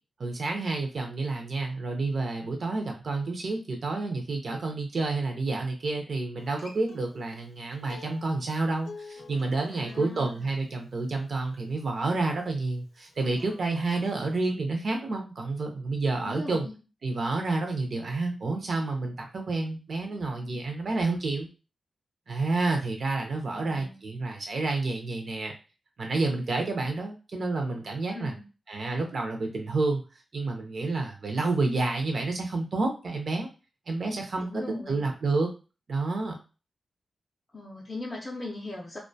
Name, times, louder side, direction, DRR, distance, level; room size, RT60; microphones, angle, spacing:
voice 1, 0.2-16.7 17.0-21.5 22.3-25.5 26.0-28.3 28.7-30.0 30.3-33.5 33.9-35.5 35.9-36.4, right 3 dB, 55° right, 3 dB, 0.4 m, -29 dB
Acoustic guitar, 6.4-11.6 13.1-14.4, left 4 dB, 75° left, 0.5 m, -50 dB
voice 2, 9.7-10.5 16.2-16.7 23.5-24.0 28.1-28.4 34.4-35.0 37.5-39.0, left 2 dB, 20° left, -4 dB, 0.4 m, -39 dB
2.3 x 2.1 x 2.6 m, 0.32 s
wide cardioid pair, 165°, 0 cm